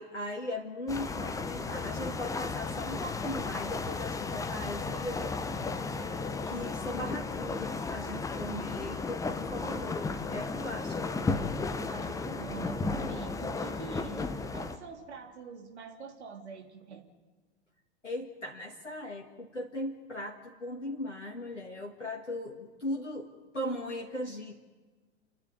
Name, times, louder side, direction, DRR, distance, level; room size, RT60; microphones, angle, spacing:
voice 1, 0.0-5.8 6.4-11.1 18.0-24.5, left 1 dB, 90° left, 0 dB, 1.9 m, -38 dB
sound 1, 0.9-14.8, left 4 dB, 10° left, 1.0 m, -34 dB
voice 2, 11.7-17.1, right 6 dB, 65° right, 3 dB, 3.3 m, -45 dB
30.0 x 10.5 x 9.5 m, 1.4 s
figure-of-eight pair, 100°, 35 cm